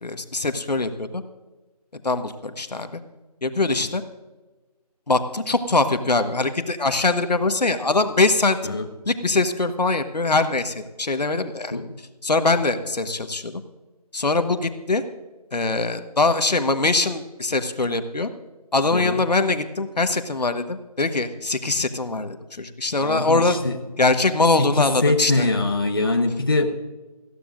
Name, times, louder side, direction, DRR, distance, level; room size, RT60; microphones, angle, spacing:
voice 1, 0.0-1.2 2.0-3.0 3.4-4.0 5.1-8.8 9.1-11.8 12.2-13.6 14.1-15.0 15.5-18.3 18.7-23.6 24.0-25.5, left 3 dB, 85° left, 9 dB, 1.3 m, -22 dB
voice 2, 23.0-23.8 24.6-26.7, left 2 dB, 35° left, 4 dB, 1.0 m, -23 dB
19.5 x 15.0 x 2.6 m, 1.2 s
figure-of-eight pair, 180°, 20 cm